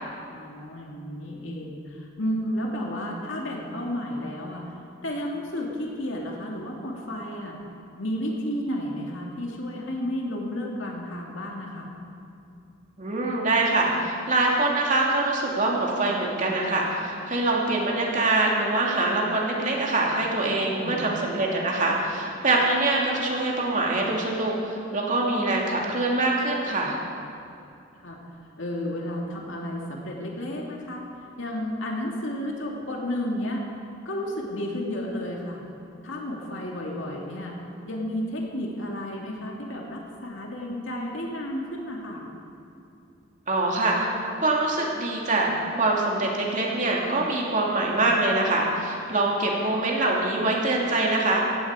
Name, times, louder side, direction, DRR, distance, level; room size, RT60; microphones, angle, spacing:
voice 1, 0.3-4.7 5.0-7.6 8.0-11.9 20.8-21.1 28.0-28.2 28.6-31.0 31.4-33.6 34.0-35.6 36.0-37.6 37.8-42.2, left 1 dB, 70° left, -1 dB, 2.4 m, -32 dB
voice 2, 13.0-27.0 43.5-44.1 44.4-51.4, right 2 dB, 40° right, -2 dB, 2.7 m, -24 dB
17.0 x 15.5 x 4.9 m, 2.6 s
head